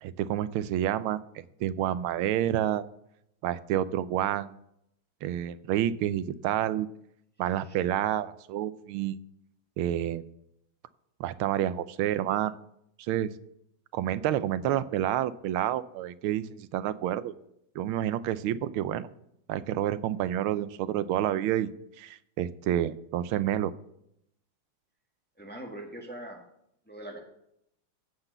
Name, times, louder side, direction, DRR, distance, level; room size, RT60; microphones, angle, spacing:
voice 1, 0.0-1.2 1.6-2.8 3.4-4.6 5.2-6.9 7.4-9.2 9.8-10.2 11.2-12.6 13.0-13.3 13.9-17.3 17.7-19.1 19.5-21.7 22.0-23.7, right 11 dB, 80° right, 15 dB, 1.5 m, -29 dB
voice 2, 25.4-26.4 26.9-27.2, right 1 dB, 5° left, 2 dB, 1.6 m, -42 dB
15.5 x 5.9 x 6.7 m, 0.76 s
omnidirectional pair, 2.3 m